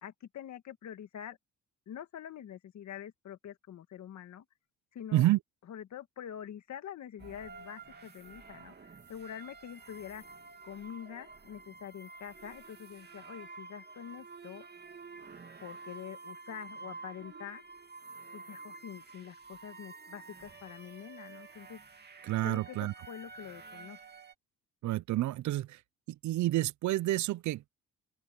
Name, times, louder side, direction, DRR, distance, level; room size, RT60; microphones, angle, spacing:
voice 1, 0.0-1.4 1.9-4.5 4.9-5.3 5.7-10.2 10.6-14.7 15.6-17.6 18.3-21.8 22.4-24.0, left 9 dB, 65° left, 2.0 m, -45 dB
sound 1, 7.2-24.3, right 4 dB, 35° right, 2.6 m, -50 dB
voice 2, 22.2-22.9 24.8-25.8 26.1-27.7, right 15 dB, 70° right, 0.6 m, -29 dB
open air
cardioid pair, 90°, 30 cm